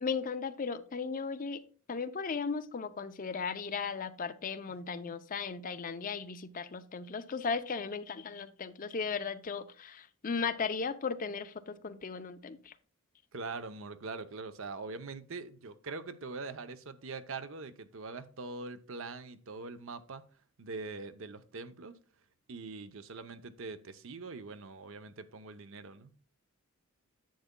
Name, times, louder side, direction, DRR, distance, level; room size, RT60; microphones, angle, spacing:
voice 1, 0.0-1.6 1.9-12.7, left 5 dB, 40° left, 0.5 m, -36 dB
voice 2, 13.3-20.3 20.6-22.0 22.5-26.1, right 3 dB, 65° right, 0.7 m, -43 dB
10.0 x 8.2 x 2.2 m
head